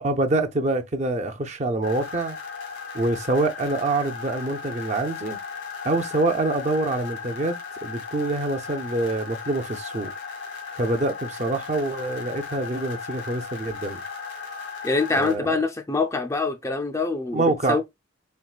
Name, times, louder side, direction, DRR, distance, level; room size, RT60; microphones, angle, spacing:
voice 1, 0.0-2.4 2.9-5.4 5.8-10.1 10.7-14.0 15.2-15.6 17.3-17.8, right 2 dB, 35° right, 0.5 m, -25 dB
sound 1, 1.8-15.4, left 5 dB, 80° left, 1.8 m, -36 dB
voice 2, 14.8-17.4 17.7-17.8, left 3 dB, 15° left, 0.4 m, -24 dB
4.5 x 3.6 x 2.3 m
head